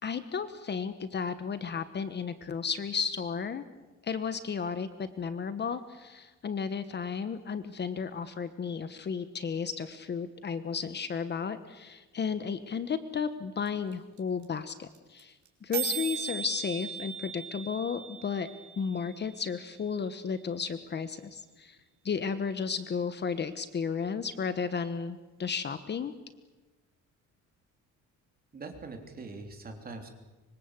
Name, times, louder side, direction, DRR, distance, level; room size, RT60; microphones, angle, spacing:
voice 1, 0.0-3.6 4.0-15.3 15.6-18.5 18.8-21.8 22.0-26.1, left 6 dB, 35° left, 11 dB, 1.2 m, -33 dB
sound 1, 13.7-13.8 13.9-14.0 14.2-14.4 14.7-14.8 14.9-15.2 15.5-15.6 15.7-19.7, right 9 dB, 70° right, 4.8 m, -38 dB
voice 2, 28.5-30.1, right 3 dB, 30° right, 4 dB, 3.5 m, -42 dB
25.5 x 24.0 x 8.3 m, 1.2 s
cardioid pair, 160°, 30 cm